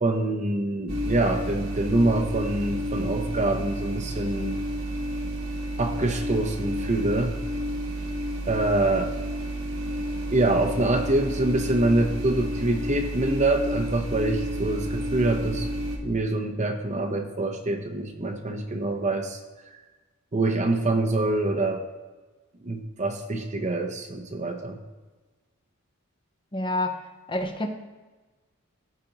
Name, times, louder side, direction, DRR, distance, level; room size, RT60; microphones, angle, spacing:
voice 1, 0.0-4.6 5.8-7.4 8.5-9.1 10.3-15.7 16.0-19.4 20.3-21.9 22.6-24.8, right 2 dB, 35° right, 4 dB, 0.7 m, -25 dB
sound 1, 0.9-16.0, equal, 80° right, 1.5 m, -31 dB
voice 2, 26.5-27.7, left 1 dB, 25° left, 5 dB, 0.7 m, -28 dB
15.5 x 5.1 x 2.9 m, 1.3 s
head